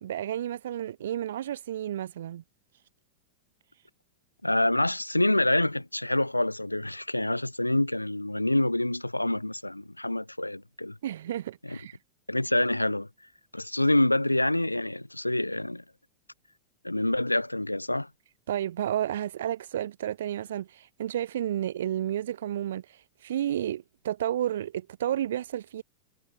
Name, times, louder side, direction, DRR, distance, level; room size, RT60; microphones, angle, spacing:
voice 1, 0.0-2.4 11.0-12.0 18.5-25.8, right 11 dB, 60° right, 0.8 m, -31 dB
voice 2, 4.4-11.0 11.7-11.8 12.3-13.1 13.5-15.8 16.8-18.1, left 1 dB, 85° left, 0.9 m, -26 dB
figure-of-eight pair, 90°, 0 cm